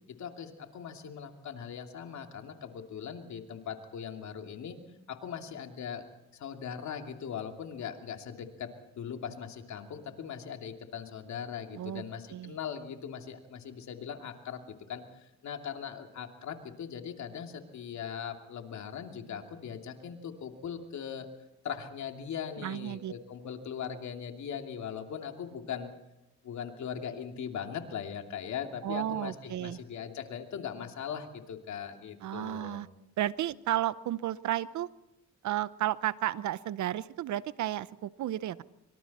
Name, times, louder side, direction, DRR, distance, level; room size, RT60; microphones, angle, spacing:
voice 1, 0.1-4.8 5.1-6.0 6.3-8.7 8.9-21.3 21.6-25.9 26.4-32.8, left 7 dB, 70° left, 4 dB, 2.8 m, -40 dB
voice 2, 11.7-12.0 12.3-12.6 22.6-23.1 28.8-29.8 32.2-32.9 33.2-34.9 35.4-38.6, right 13 dB, 70° right, 17 dB, 0.8 m, -33 dB
25.5 x 25.0 x 4.3 m, 0.93 s
cardioid pair, 90°, 30 cm